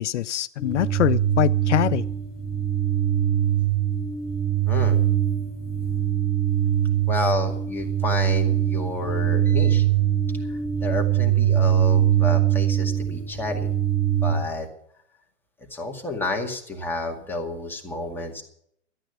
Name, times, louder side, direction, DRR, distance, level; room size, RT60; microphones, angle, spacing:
voice 1, 0.0-2.0, left 13 dB, 75° left, 0.5 m, -23 dB
sound 1, 0.6-14.3, right 11 dB, 25° left, 2.5 m, -22 dB
voice 2, 4.7-5.0 7.1-9.8 10.5-13.7 14.2-14.7 15.7-18.4, left 2 dB, 5° left, 2.1 m, -30 dB
13.0 x 9.0 x 8.0 m
hypercardioid pair, 125°, 37 cm